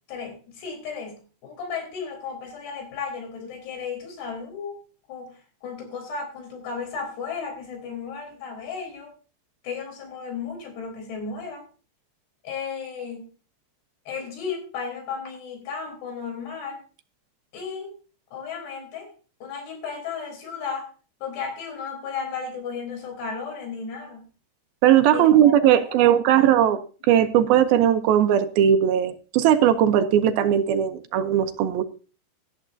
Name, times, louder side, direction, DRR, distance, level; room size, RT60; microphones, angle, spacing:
voice 1, 0.1-4.8 5.1-9.1 9.6-11.6 12.4-13.3 14.1-16.8 17.5-17.9 18.3-19.1 19.4-20.9 21.2-24.2 25.1-25.5 25.9-26.2, left 5 dB, 80° left, 3 dB, 5.9 m, -34 dB
voice 2, 24.8-26.8 27.1-31.8, right 10 dB, 75° right, 9 dB, 2.5 m, -18 dB
17.5 x 12.0 x 2.7 m, 0.36 s
omnidirectional pair, 4.6 m